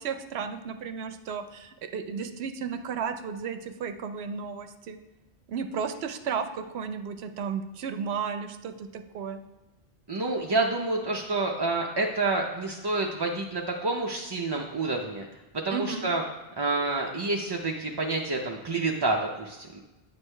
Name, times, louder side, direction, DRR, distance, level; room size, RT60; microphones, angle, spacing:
voice 1, 0.0-5.0 5.5-9.4 15.7-16.1, right 6 dB, 75° right, 9 dB, 0.8 m, -34 dB
voice 2, 10.1-15.3 15.6-16.2 16.6-19.8, right 3 dB, 35° right, 0 dB, 0.4 m, -28 dB
9.4 x 6.3 x 3.3 m, 1.1 s
omnidirectional pair, 1.1 m